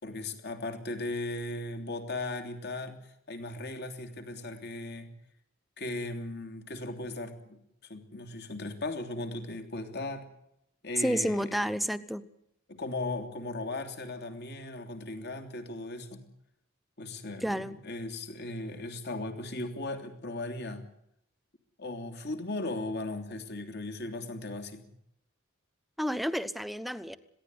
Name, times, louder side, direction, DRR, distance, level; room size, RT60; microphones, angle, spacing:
voice 1, 0.0-5.1 5.8-10.3 10.8-11.5 12.7-16.2 17.0-20.8 21.8-24.8, left 2 dB, 55° left, 7 dB, 3.2 m, -37 dB
voice 2, 11.0-12.2 17.4-17.8 26.0-27.2, equal, ahead, 13 dB, 1.0 m, -30 dB
21.5 x 16.5 x 9.7 m, 0.78 s
head